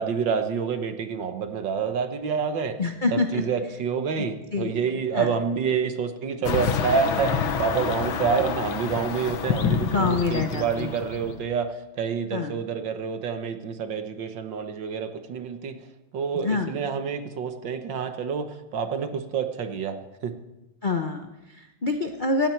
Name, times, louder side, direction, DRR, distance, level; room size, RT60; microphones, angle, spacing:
voice 1, 0.0-2.8 3.1-15.8 16.1-20.0 20.2-20.3, right 6 dB, 65° right, 8 dB, 1.8 m, -28 dB
voice 2, 2.8-3.4 4.2-4.3 4.5-4.7 5.1-5.3 9.9-10.9 12.3-12.5 16.4-16.7 20.8-22.5, left 3 dB, 55° left, 5 dB, 0.5 m, -26 dB
sound 1, 6.4-11.5, left 7 dB, 75° left, 1.9 m, -28 dB
17.0 x 15.5 x 4.5 m, 1.0 s
omnidirectional pair, 2.3 m